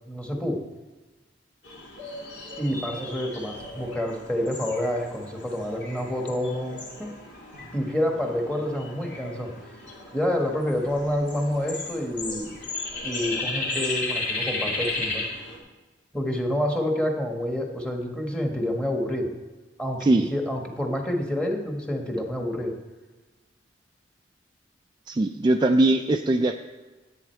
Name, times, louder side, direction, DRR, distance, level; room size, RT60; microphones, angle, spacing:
voice 1, 0.1-0.6 2.6-7.1 7.7-9.5 10.1-12.5 13.0-15.2 16.1-19.3 19.8-22.8, left 1 dB, 5° left, 2 dB, 1.2 m, -28 dB
sound 1, 1.6-15.6, left 2 dB, 75° left, 2.5 m, -35 dB
voice 2, 25.1-26.6, right 2 dB, 25° right, 5 dB, 0.3 m, -21 dB
11.0 x 8.6 x 4.4 m, 1.2 s
head